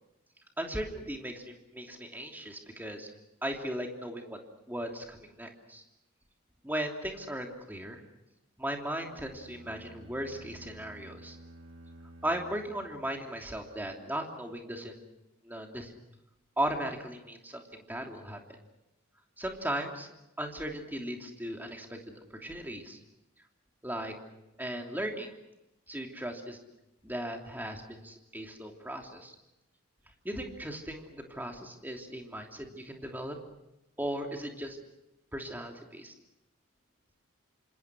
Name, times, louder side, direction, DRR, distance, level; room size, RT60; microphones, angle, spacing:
voice 1, 0.6-3.1 3.4-4.4 4.7-5.8 6.6-8.0 8.6-11.4 12.2-15.0 15.4-15.9 16.6-18.4 19.4-20.1 20.4-22.0 22.4-23.0 23.8-24.1 24.6-25.3 25.9-26.6 27.0-29.3 30.2-33.4 34.0-34.8 35.3-36.1, right 1 dB, 10° right, 2 dB, 3.0 m, -37 dB
sound 1, 9.0-13.4, right 1 dB, 60° right, 1.8 m, -52 dB
28.0 x 26.5 x 6.3 m, 0.90 s
head